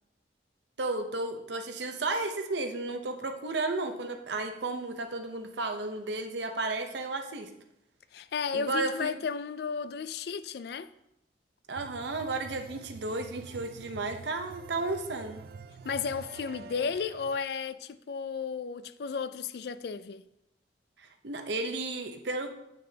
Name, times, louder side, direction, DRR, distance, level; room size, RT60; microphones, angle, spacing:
voice 1, 0.8-7.5 8.5-9.1 11.7-15.4 21.0-22.5, right 2 dB, 70° right, 0.8 m, -33 dB
voice 2, 8.1-10.9 15.8-20.2, left 6 dB, 60° left, 0.3 m, -34 dB
sound 1, 11.7-17.4, right 5 dB, 55° right, 0.3 m, -47 dB
8.4 x 6.6 x 2.8 m
head